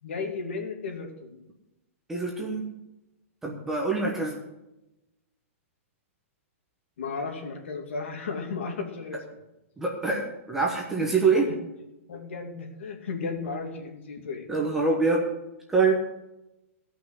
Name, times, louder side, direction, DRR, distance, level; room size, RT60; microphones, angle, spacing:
voice 1, 0.0-1.4 7.0-9.2 11.5-11.6 12.1-14.5, left 4 dB, 60° left, 3 dB, 2.5 m, -34 dB
voice 2, 2.1-2.7 3.4-4.4 9.8-11.5 14.5-15.3 15.7-15.9, right 4 dB, 5° right, -2 dB, 1.1 m, -25 dB
15.5 x 5.7 x 8.0 m, 0.96 s
hypercardioid pair, 175°, 8 cm